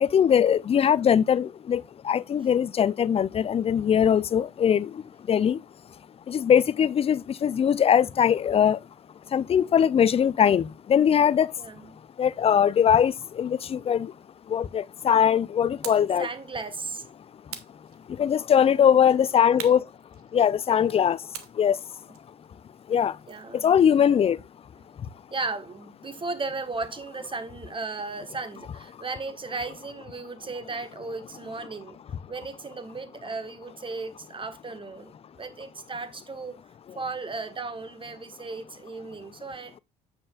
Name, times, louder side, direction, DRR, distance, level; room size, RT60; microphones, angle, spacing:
voice 1, 0.0-4.9 5.3-5.6 6.3-8.8 9.3-11.5 12.2-14.1 14.5-16.3 18.2-19.8 20.3-21.2 21.6-21.8 22.9-23.1 23.5-24.4, left 8 dB, 30° left, 0.5 m, -21 dB
voice 2, 11.6-12.0 16.2-17.0 23.3-23.7 24.8-24.9 25.3-32.0 32.3-36.6 36.9-39.8, right 3 dB, 25° right, 1.4 m, -35 dB
sound 1, 15.8-16.2 17.5-18.4 19.6-20.7 21.3-23.6, right 9 dB, 75° right, 1.0 m, -43 dB
8.5 x 7.4 x 2.4 m
figure-of-eight pair, 50°, 19 cm